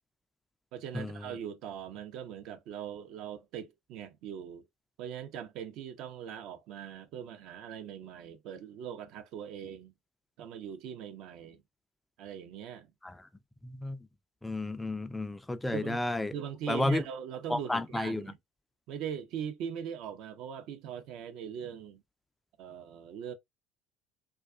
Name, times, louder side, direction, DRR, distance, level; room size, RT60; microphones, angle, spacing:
voice 1, 0.7-4.6 5.0-9.9 10.4-11.6 12.2-12.9 15.7-16.0 16.3-18.4 18.9-22.0 22.6-23.3, right 8 dB, 60° right, 0.5 m, -41 dB
voice 2, 13.6-14.0 14.4-16.3 16.7-17.0 17.5-18.2, left 2 dB, 10° left, 0.3 m, -32 dB
2.3 x 2.3 x 2.4 m
hypercardioid pair, 60°, 0 cm